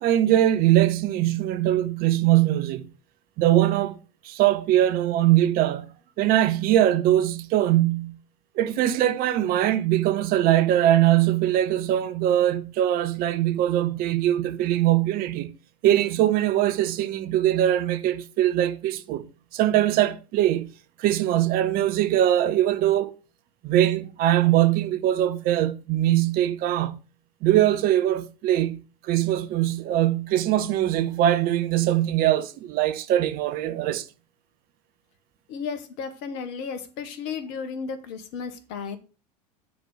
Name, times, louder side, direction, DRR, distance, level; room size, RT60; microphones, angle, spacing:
voice 1, 0.0-2.9 3.4-4.0 4.2-8.2 8.5-15.5 15.8-19.3 19.5-20.7 21.0-23.2 23.6-27.0 27.4-34.0, right 13 dB, 45° right, 1.0 m, -22 dB
voice 2, 35.5-39.0, left 6 dB, 55° left, 1.7 m, -34 dB
9.5 x 4.4 x 7.1 m
figure-of-eight pair, 80°, 21 cm